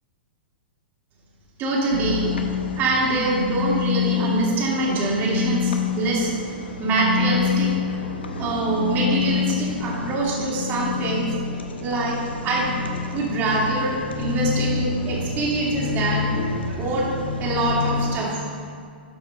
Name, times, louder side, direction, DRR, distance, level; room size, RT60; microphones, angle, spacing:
voice 1, 1.6-2.3 2.8-6.3 6.8-7.7 8.4-11.3 11.8-12.8 13.1-16.3 16.8-17.1 17.4-18.4, right 2 dB, 35° right, -3 dB, 2.2 m, -24 dB
sound 1, 1.9-18.2, left 6 dB, 80° left, 0.8 m, -27 dB
12.5 x 4.9 x 3.8 m, 2.1 s
hypercardioid pair, 110°, 6 cm